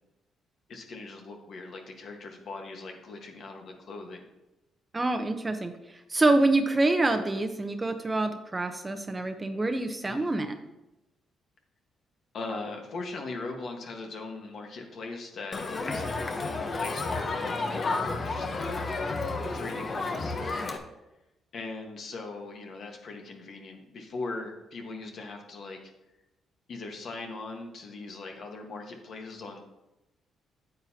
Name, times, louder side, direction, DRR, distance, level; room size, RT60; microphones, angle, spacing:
voice 1, 0.7-4.3 10.0-10.3 12.3-15.6 15.9-18.9 19.5-20.4 21.5-25.8 26.7-29.6, left 3 dB, 60° left, 3 dB, 1.4 m, -40 dB
voice 2, 4.9-5.7 6.1-10.6, right 2 dB, 20° right, 8 dB, 0.8 m, -26 dB
Crowd, 15.5-20.8, left 3 dB, 40° left, 0.9 m, -31 dB
9.2 x 7.9 x 2.8 m, 0.94 s
cardioid pair, 90°, 0 cm